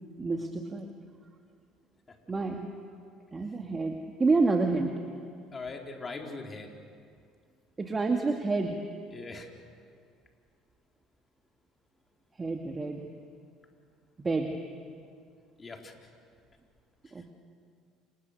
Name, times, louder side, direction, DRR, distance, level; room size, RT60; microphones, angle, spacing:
voice 1, 0.2-0.9 2.3-2.7 3.3-4.9 7.8-8.8 12.3-13.1 14.2-14.6 17.1-17.3, right 3 dB, 25° right, 3 dB, 2.3 m, -28 dB
voice 2, 5.5-6.7 9.1-9.5 15.6-15.9, left 3 dB, 30° left, 2 dB, 4.5 m, -40 dB
29.5 x 26.0 x 6.9 m, 2.3 s
hypercardioid pair, 65°, 0 cm